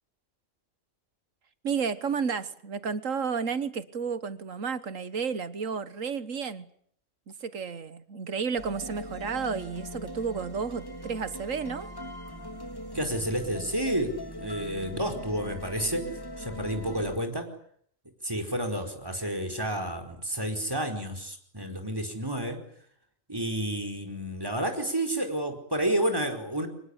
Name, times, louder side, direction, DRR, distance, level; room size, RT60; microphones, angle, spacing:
voice 1, 1.6-6.7 7.3-11.9, right 6 dB, 75° right, 14 dB, 1.8 m, -32 dB
sound 1, 8.6-17.2, equal, 15° left, 2.8 m, -40 dB
voice 2, 12.9-16.1 16.4-17.5 18.2-22.6 23.3-26.7, right 1 dB, 15° right, 4 dB, 4.8 m, -30 dB
25.0 x 21.0 x 10.0 m, 0.65 s
omnidirectional pair, 1.4 m